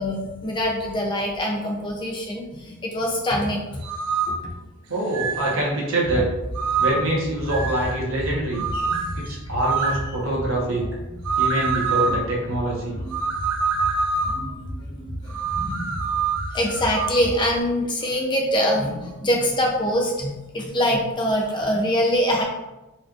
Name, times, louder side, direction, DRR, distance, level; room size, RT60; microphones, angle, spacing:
voice 1, 0.0-3.6 4.3-4.4 8.6-9.1 12.1-12.2 13.0-13.2 14.2-16.0 16.5-22.4, equal, 20° left, 0 dB, 0.5 m, -24 dB
sound 1, 3.8-4.4 5.1-5.6 6.6-7.1 7.5-8.0 8.5-9.1 9.6-10.1 11.3-12.2 13.1-14.4 15.3-17.2, right 5 dB, 90° right, 0.5 m, -25 dB
voice 2, 4.9-6.3 6.8-8.6 9.1-10.8 11.4-13.0, right 1 dB, 65° right, -3 dB, 1.0 m, -25 dB
sound 2, 5.1-17.6, equal, 75° left, 1.3 m, -35 dB
4.2 x 3.0 x 2.4 m, 1.0 s
head